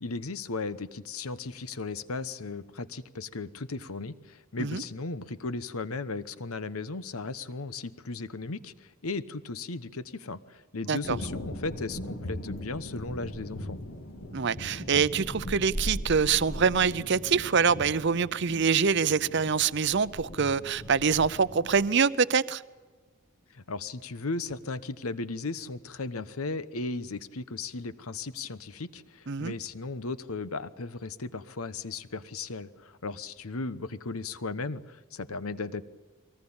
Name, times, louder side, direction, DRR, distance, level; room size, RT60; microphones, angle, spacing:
voice 1, 0.0-13.8 23.5-35.8, left 3 dB, 90° left, 1.0 m, -36 dB
sound 1, 11.0-22.0, equal, 70° left, 2.7 m, -39 dB
voice 2, 14.3-22.6 29.3-29.5, right 6 dB, 55° right, 0.6 m, -25 dB
23.5 x 18.5 x 8.8 m
head